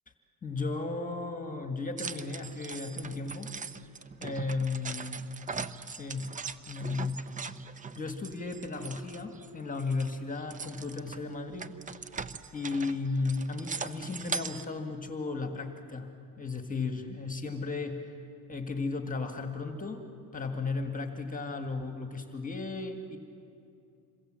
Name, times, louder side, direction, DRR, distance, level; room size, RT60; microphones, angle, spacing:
voice 1, 0.4-3.5 4.2-5.4 5.9-6.2 6.7-7.2 8.0-11.7 12.5-16.1 16.4-18.2 18.5-20.1 20.3-23.2, left 3 dB, 15° left, 6 dB, 1.6 m, -35 dB
sound 1, 2.0-9.5 9.8-14.6, right 5 dB, 15° right, 0.6 m, -40 dB
27.0 x 22.5 x 7.6 m, 2.6 s
cardioid pair, 125°, 46 cm